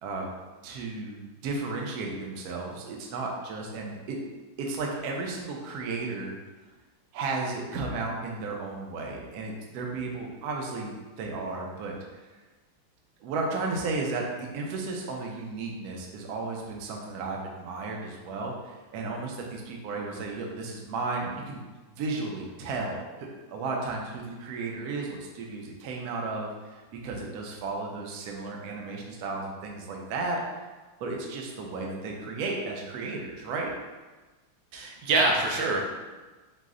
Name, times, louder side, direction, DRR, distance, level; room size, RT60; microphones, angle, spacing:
voice 1, 0.0-0.3 0.6-4.2 4.6-6.4 7.1-11.9 13.2-21.6 21.9-30.7 31.0-33.7, right 3 dB, 90° right, 0 dB, 0.8 m, -34 dB
voice 2, 34.7-35.8, right 2 dB, 70° right, 0 dB, 1.3 m, -25 dB
4.9 x 2.1 x 3.6 m, 1.2 s
omnidirectional pair, 2.4 m